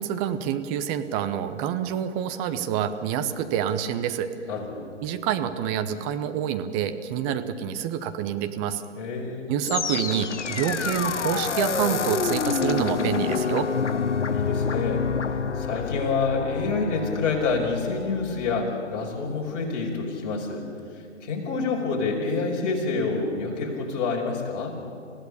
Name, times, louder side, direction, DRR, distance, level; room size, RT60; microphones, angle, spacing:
voice 1, 0.0-4.3 5.0-8.8 9.5-13.7, right 9 dB, 20° right, 9 dB, 1.0 m, -27 dB
voice 2, 4.5-4.9 8.9-9.5 13.9-14.0 14.3-15.0 15.6-20.7 21.2-24.8, left 4 dB, 35° left, -1 dB, 5.6 m, -27 dB
sound 1, 9.6-18.8, left 5 dB, 70° left, 1.2 m, -28 dB
28.0 x 16.0 x 8.7 m, 2.4 s
figure-of-eight pair, 130°, 37 cm